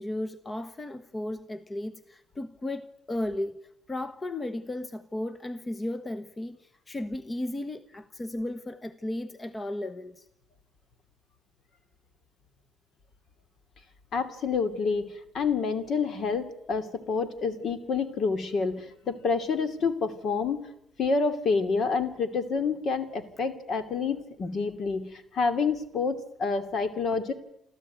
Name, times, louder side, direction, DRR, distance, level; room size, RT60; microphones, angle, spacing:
voice 1, 0.0-3.6 3.9-10.2, left 1 dB, 25° left, 1.1 m, -35 dB
voice 2, 14.1-15.1 15.3-20.6 21.0-27.3, left 4 dB, 60° left, 2.7 m, -28 dB
28.0 x 13.5 x 9.3 m
cardioid pair, 90°, 0 cm